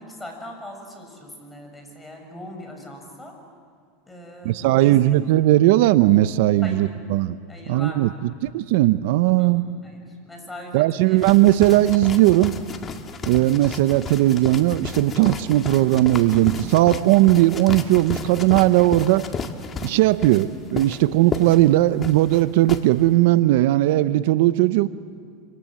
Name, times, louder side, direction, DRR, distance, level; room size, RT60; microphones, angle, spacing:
voice 1, 0.0-3.4 4.1-5.2 6.6-6.9 7.5-8.2 9.4-11.2, left 1 dB, 10° left, 2 dB, 7.0 m, -40 dB
voice 2, 4.4-7.4 7.7-9.6 10.7-12.6 13.2-19.3 19.8-24.9, right 16 dB, 70° right, 14 dB, 0.7 m, -18 dB
sound 1, 11.2-22.8, left 5 dB, 30° left, 2.0 m, -33 dB
28.0 x 26.5 x 7.6 m, 2.2 s
supercardioid pair, 120°, 0 cm